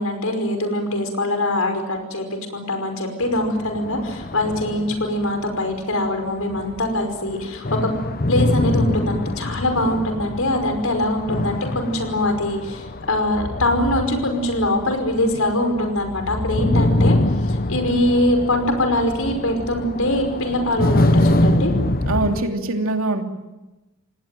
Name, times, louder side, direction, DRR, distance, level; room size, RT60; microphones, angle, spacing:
voice 1, 0.0-2.3 2.5-7.9 8.3-17.2 17.5-21.7, left 1 dB, 75° left, 6 dB, 5.3 m, -23 dB
sound 1, 3.2-6.1 6.4-22.4, left 1 dB, 45° left, 1.1 m, -24 dB
voice 2, 22.1-23.2, right 2 dB, 75° right, 4 dB, 2.9 m, -23 dB
28.0 x 19.5 x 9.2 m, 1.1 s
head